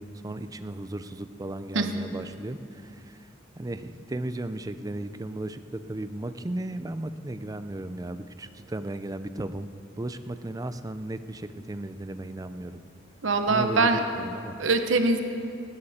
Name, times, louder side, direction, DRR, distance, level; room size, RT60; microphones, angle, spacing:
voice 1, 0.0-3.2 3.6-9.7 10.0-12.8 13.5-14.5, right 1 dB, 20° right, 11 dB, 0.5 m, -35 dB
voice 2, 13.2-14.0 14.6-15.2, right 3 dB, 75° right, 6 dB, 1.0 m, -22 dB
19.5 x 13.5 x 4.3 m, 2.5 s
head